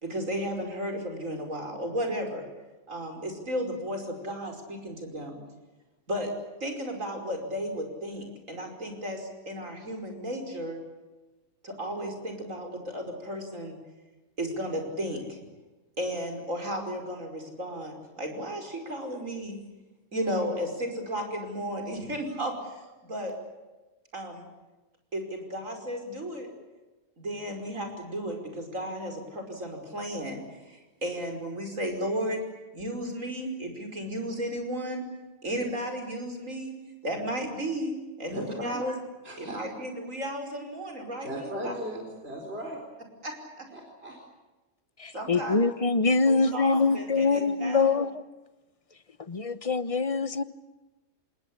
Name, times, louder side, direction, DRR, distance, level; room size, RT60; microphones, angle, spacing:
voice 1, 0.0-2.4 2.9-5.4 6.1-6.3 6.6-10.8 11.6-13.8 14.4-15.4 16.0-19.6 20.1-23.3 24.1-24.4 25.1-26.5 27.2-32.4 32.7-35.1 35.4-36.7 37.0-39.0 39.4-41.7 43.2-43.7 45.1-45.6 46.3-47.9, equal, 90° right, 5.7 m, -34 dB
voice 2, 38.3-38.8 39.2-39.6 41.2-42.8 43.7-44.2, equal, 50° right, 4.7 m, -37 dB
voice 3, 45.0-48.2 49.3-50.4, left 4 dB, 30° left, 1.0 m, -24 dB
27.0 x 20.5 x 8.7 m
omnidirectional pair, 1.3 m